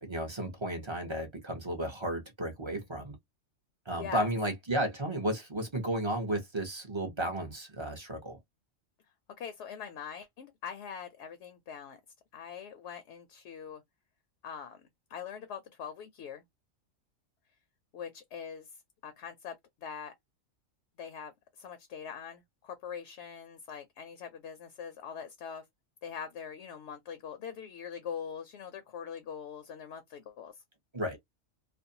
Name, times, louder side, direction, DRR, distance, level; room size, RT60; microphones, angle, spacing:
voice 1, 0.0-3.2 3.9-8.4 30.9-31.2, right 1 dB, 30° right, 0.6 m, -33 dB
voice 2, 3.9-4.3 9.4-12.0 12.3-13.8 14.4-14.8 15.1-16.4 17.9-18.7 19.0-20.1 21.0-25.6 26.0-30.6, left 7 dB, 70° left, 0.8 m, -43 dB
2.5 x 2.1 x 2.6 m
omnidirectional pair, 1.3 m